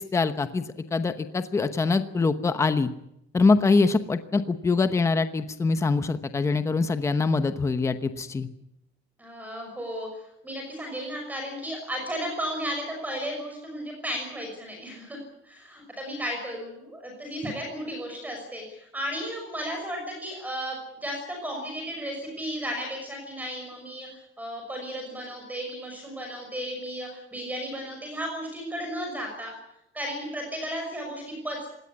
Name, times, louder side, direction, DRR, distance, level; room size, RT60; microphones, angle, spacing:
voice 1, 0.0-2.9 3.3-8.5, left 4 dB, 15° left, 10 dB, 0.9 m, -24 dB
voice 2, 9.2-10.1 10.4-29.5 29.9-31.7, equal, 10° right, 1 dB, 6.0 m, -34 dB
20.5 x 17.5 x 9.7 m, 0.81 s
cardioid pair, 180°, 21 cm